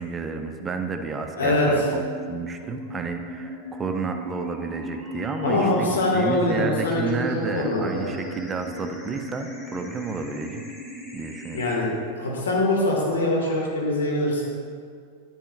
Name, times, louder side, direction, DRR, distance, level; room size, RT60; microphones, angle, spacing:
voice 1, 0.0-2.0 2.3-10.6 11.1-11.6, right 4 dB, 20° right, 5 dB, 0.6 m, -31 dB
voice 2, 1.4-1.8 5.4-8.0 11.5-11.9 12.2-14.4, left 1 dB, 65° left, -2 dB, 2.0 m, -23 dB
sound 1, 1.7-11.8, equal, 5° left, 2.1 m, -37 dB
10.0 x 9.7 x 2.5 m, 2.2 s
figure-of-eight pair, 90°, 0 cm